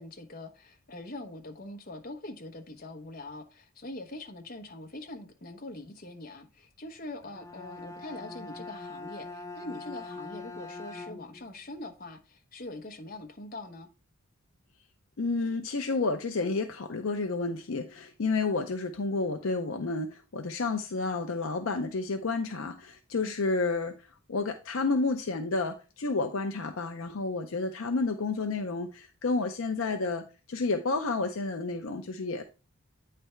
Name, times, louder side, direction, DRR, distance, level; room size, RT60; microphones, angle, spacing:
voice 1, 0.0-13.9 23.2-23.3, left 2 dB, 40° left, 1.0 m, -43 dB
Bowed string instrument, 7.2-11.5, left 3 dB, 15° left, 0.3 m, -42 dB
voice 2, 15.2-23.9 24.3-32.4, left 3 dB, 65° left, 0.6 m, -30 dB
9.1 x 3.4 x 4.4 m
head